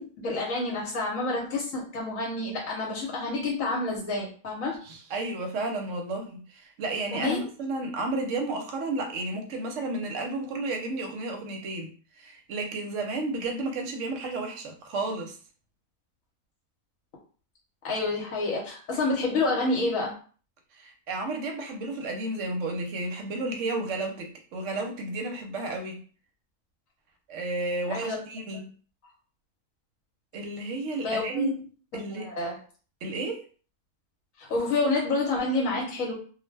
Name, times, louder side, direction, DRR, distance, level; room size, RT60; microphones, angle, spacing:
voice 1, 0.0-4.7 7.1-7.5 17.8-20.1 27.9-28.2 31.0-31.5 31.9-32.6 34.4-36.1, left 2 dB, 70° left, -2 dB, 1.1 m, -28 dB
voice 2, 4.8-15.3 20.7-26.0 27.3-28.7 30.3-31.5 31.9-32.3 33.0-33.4, right 2 dB, 65° right, 3 dB, 0.9 m, -32 dB
2.4 x 2.1 x 3.2 m, 0.41 s
omnidirectional pair, 1.5 m